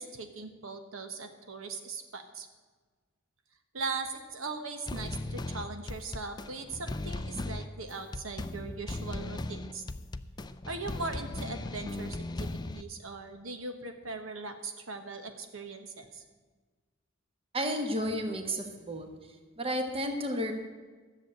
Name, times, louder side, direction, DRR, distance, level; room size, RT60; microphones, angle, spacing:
voice 1, 0.0-2.5 3.7-9.8 10.7-16.2, right 3 dB, 75° right, 6 dB, 1.2 m, -40 dB
sound 1, 4.9-12.8, left 2 dB, 20° left, 0.4 m, -37 dB
voice 2, 17.5-19.1 19.6-20.5, equal, 25° right, 5 dB, 1.3 m, -32 dB
13.5 x 7.3 x 8.7 m, 1.4 s
head